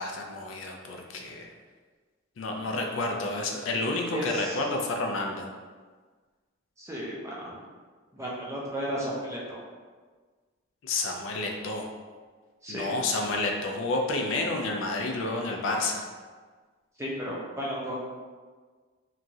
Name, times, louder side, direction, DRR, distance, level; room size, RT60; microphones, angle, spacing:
voice 1, 0.0-1.5 2.4-5.5 10.8-11.9 12.7-16.1, left 2 dB, 65° left, 1 dB, 0.4 m, -30 dB
voice 2, 4.1-4.6 6.8-7.6 8.1-9.6 12.6-12.9 17.0-18.0, equal, 15° right, -5 dB, 0.4 m, -34 dB
2.9 x 2.3 x 2.6 m, 1.5 s
head